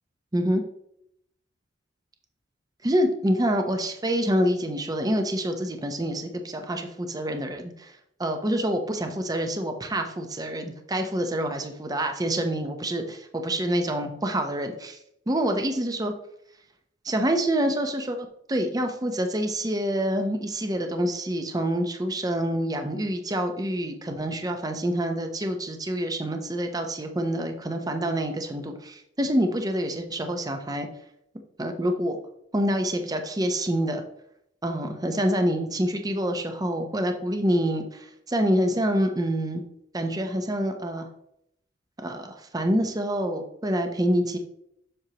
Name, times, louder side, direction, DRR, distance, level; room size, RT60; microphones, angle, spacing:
voice 1, 2.8-15.0 15.3-16.1 17.0-18.2 18.5-30.9 31.6-32.2 32.5-34.0 34.6-39.6 39.9-41.1 42.0-44.4, equal, 20° right, 5 dB, 0.7 m, -27 dB
7.8 x 6.4 x 2.9 m, 0.75 s
head